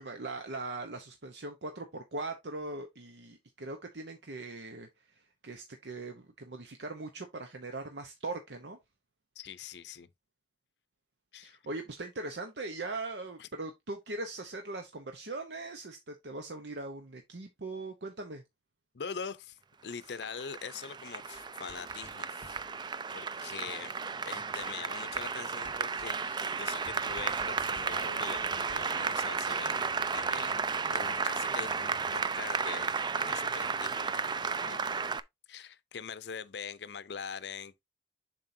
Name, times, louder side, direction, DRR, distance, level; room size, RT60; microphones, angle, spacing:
voice 1, 0.0-4.9 5.4-8.8 11.4-18.4, right 2 dB, 75° right, 0.9 m, -40 dB
voice 2, 9.4-10.1 11.3-11.6 13.4-13.5 18.9-22.6 23.1-23.9 24.2-30.6 30.9-32.9 33.1-34.1 34.4-34.8 35.5-37.8, left 6 dB, 70° left, 0.6 m, -43 dB
Applause, 19.9-35.2, right 5 dB, 25° right, 0.4 m, -33 dB
sound 1, 20.0-20.2 20.7-20.8 21.0-23.4 23.6-26.3 26.6-26.7 26.8-28.8, right 1 dB, 50° right, 1.5 m, -55 dB
7.4 x 5.4 x 2.7 m
head